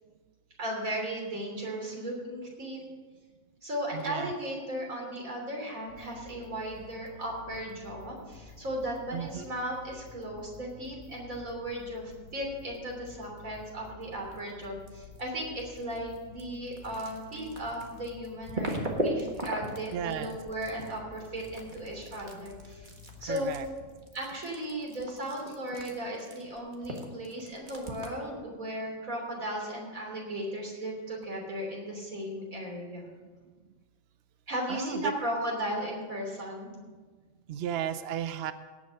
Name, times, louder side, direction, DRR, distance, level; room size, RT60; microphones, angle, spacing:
voice 1, 0.6-2.8 3.6-22.9 23.2-23.5 24.1-33.1 34.5-36.7, right 1 dB, 85° right, -1 dB, 3.7 m, -36 dB
voice 2, 3.9-4.3 9.1-9.4 19.9-20.4 23.2-23.7 34.7-35.1 37.5-38.5, right 9 dB, 60° right, 11 dB, 0.8 m, -34 dB
sound 1, 5.9-23.7, left 5 dB, 75° left, 1.4 m, -52 dB
sound 2, 14.1-15.3 15.5-28.3, right 1 dB, 35° right, 1.7 m, -38 dB
17.5 x 6.3 x 6.4 m, 1.4 s
omnidirectional pair, 1.4 m